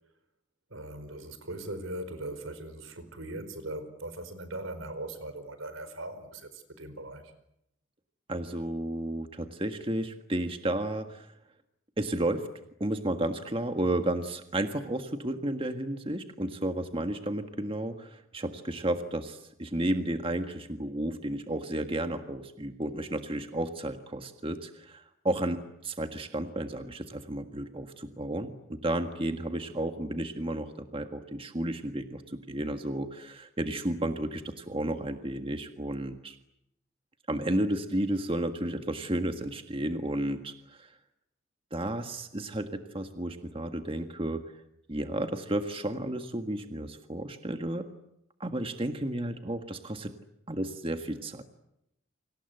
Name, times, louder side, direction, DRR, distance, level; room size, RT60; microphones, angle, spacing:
voice 1, 0.7-7.3, right 1 dB, 80° right, 11 dB, 4.8 m, -40 dB
voice 2, 8.3-11.3 12.0-12.5 12.8-36.4 37.3-40.9 41.7-44.4 44.9-47.9 48.4-50.1 50.5-51.4, right 1 dB, 25° right, 6 dB, 1.6 m, -32 dB
29.0 x 25.5 x 8.0 m, 0.81 s
head